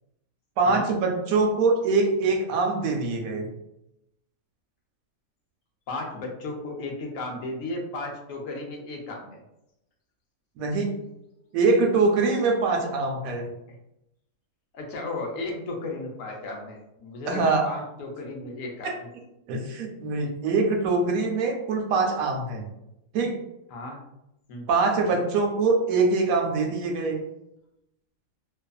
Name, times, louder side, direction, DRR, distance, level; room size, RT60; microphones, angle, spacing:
voice 1, 0.6-3.5 10.6-10.9 11.5-13.5 17.3-17.7 18.8-18.9 19.5-22.6 23.1-23.3 24.7-27.2, right 3 dB, 80° right, 2 dB, 1.0 m, -23 dB
voice 2, 5.9-9.4 14.7-18.9 23.7-24.0 24.5-24.7, left 2 dB, 75° left, 1 dB, 1.0 m, -34 dB
2.5 x 2.5 x 2.3 m, 0.85 s
omnidirectional pair, 1.5 m